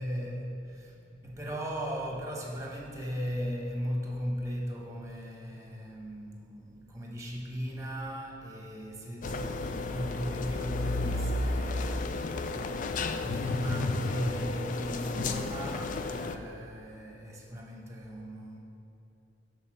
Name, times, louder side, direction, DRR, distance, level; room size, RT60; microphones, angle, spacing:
voice 1, 0.0-18.6, equal, 15° right, -2 dB, 1.1 m, -37 dB
sound 1, 9.2-16.4, left 3 dB, 40° left, 0.3 m, -33 dB
6.6 x 4.0 x 6.2 m, 3.0 s
head